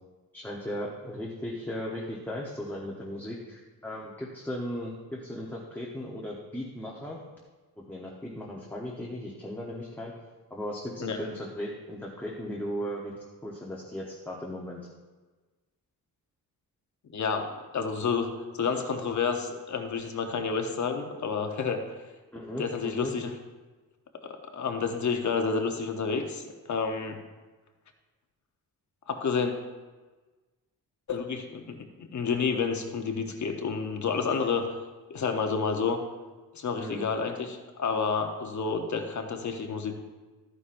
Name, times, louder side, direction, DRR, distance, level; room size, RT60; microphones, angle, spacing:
voice 1, 0.3-5.0 5.2-7.2 7.9-10.1 10.5-13.1 13.4-14.8 22.3-23.1 36.8-37.1, equal, 5° left, -4 dB, 0.9 m, -37 dB
voice 2, 17.1-21.8 22.6-23.3 24.2-27.2 29.1-29.5 31.1-34.6 35.1-36.0 36.5-40.0, left 5 dB, 50° left, 5 dB, 0.9 m, -30 dB
13.0 x 9.8 x 2.6 m, 1.3 s
wide cardioid pair, 180°, 37 cm